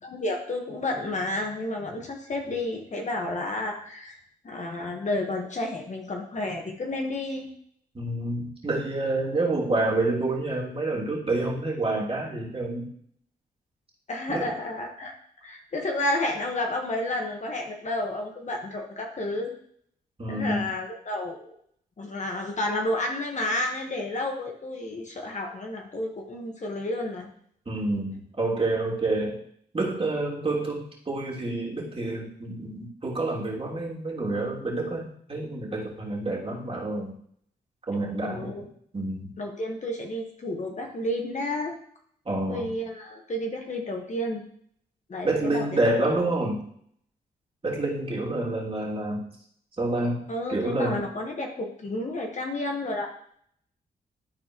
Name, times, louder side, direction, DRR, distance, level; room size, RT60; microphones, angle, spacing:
voice 1, 0.0-4.2 4.4-7.5 14.1-15.1 15.4-19.5 20.3-21.5 22.0-27.3 38.2-38.6 39.4-41.8 42.5-44.5 45.1-45.8 50.3-53.1, left 1 dB, 45° left, 1 dB, 1.5 m, -31 dB
voice 2, 7.9-12.9 14.3-14.6 20.2-20.7 27.7-29.4 29.7-37.1 37.9-38.7 38.9-39.3 42.2-42.7 45.2-46.6 47.6-49.2 49.8-50.2 50.5-51.1, right 2 dB, 35° right, -4 dB, 2.9 m, -28 dB
12.5 x 4.3 x 3.1 m, 0.65 s
cardioid pair, 70°, 17 cm